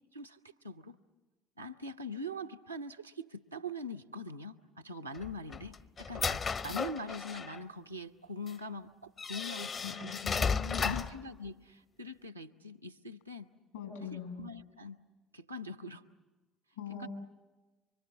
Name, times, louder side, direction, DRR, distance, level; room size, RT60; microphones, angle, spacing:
voice 1, 0.1-1.0 1.6-9.7 10.0-10.2 10.8-13.5 14.4-15.0 15.3-16.0 17.0-17.1, left 1 dB, 90° right, 5 dB, 0.8 m, -42 dB
sound 1, 5.1-7.6 8.5-8.6 9.2-11.2, left 5 dB, 40° left, 0.8 m, -34 dB
voice 2, 9.8-11.0 13.7-14.4 16.8-17.1, left 6 dB, 80° left, 4 dB, 6.9 m, -42 dB
26.5 x 25.0 x 7.5 m, 1.2 s
figure-of-eight pair, 55°, 0 cm